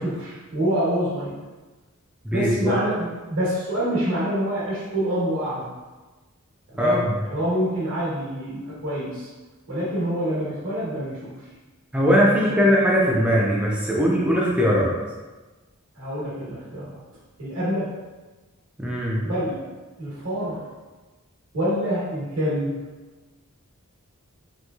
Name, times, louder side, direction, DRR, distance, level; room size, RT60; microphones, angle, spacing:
voice 1, 0.0-1.4 2.3-5.7 6.7-9.3 9.7-11.3 12.3-12.7 15.9-17.0 17.4-17.9 19.2-19.5 20.0-20.6 21.5-22.7, equal, 75° right, -9 dB, 1.1 m, -26 dB
voice 2, 2.2-2.7 6.8-7.1 11.9-14.9 18.8-19.2, equal, 5° right, -4 dB, 0.4 m, -20 dB
3.0 x 2.9 x 2.3 m, 1.2 s
head